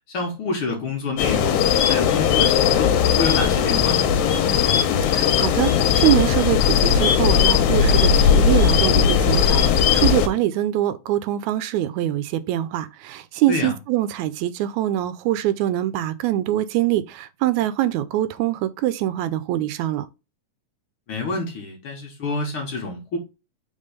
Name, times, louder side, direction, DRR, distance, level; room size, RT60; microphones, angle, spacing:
voice 1, 0.1-4.1 13.5-13.8 21.1-23.2, left 3 dB, 55° left, 1.8 m, -27 dB
sound 1, 1.2-10.3, left 8 dB, 85° left, 2.2 m, -18 dB
voice 2, 5.1-20.1, right 13 dB, 80° right, 1.9 m, -23 dB
5.4 x 3.8 x 5.1 m
omnidirectional pair, 3.4 m